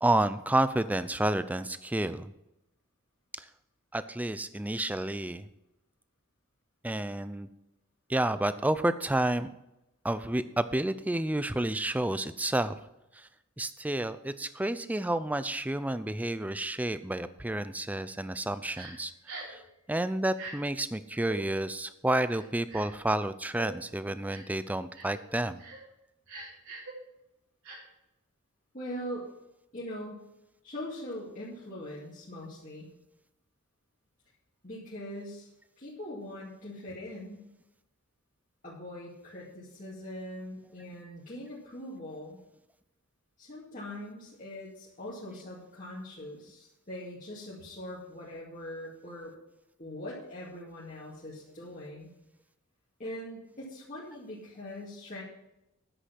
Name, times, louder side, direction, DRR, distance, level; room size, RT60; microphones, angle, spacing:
voice 1, 0.0-2.3 3.3-3.5 3.9-5.5 6.8-7.5 8.1-9.5 10.0-12.7 13.1-13.3 13.6-19.6 19.9-25.6, right 1 dB, 5° right, 13 dB, 0.4 m, -30 dB
Crying sobbing, 18.7-18.9 19.3-19.6 20.3-20.5 21.2-21.4 22.3-23.0 23.5-23.7 24.3-24.5 24.9-25.2 25.6-25.8 26.3-26.9 27.6-27.8, right 3 dB, 70° right, 4.5 m, -43 dB
voice 2, 28.7-29.3 29.7-30.2 30.6-32.9 34.6-35.5 35.8-37.5 38.6-42.4 43.4-49.3 49.8-52.1 53.0-55.2, left 1 dB, 35° left, -8 dB, 2.3 m, -42 dB
10.0 x 8.2 x 5.9 m, 0.90 s
head